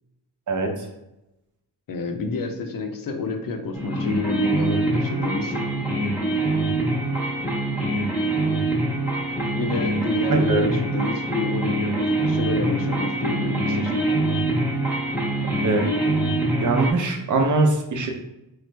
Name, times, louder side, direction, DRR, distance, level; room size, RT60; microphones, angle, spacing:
voice 1, 0.5-0.9 10.3-10.6 15.6-15.9 16.6-18.1, right 2 dB, 45° right, 3 dB, 0.7 m, -22 dB
voice 2, 1.9-5.5 9.5-14.1, left 3 dB, 50° left, 5 dB, 0.6 m, -29 dB
sound 1, 3.7-16.9, right 2 dB, 5° right, 1.1 m, -24 dB
3.0 x 2.0 x 3.2 m, 0.90 s
cardioid pair, 65°, 42 cm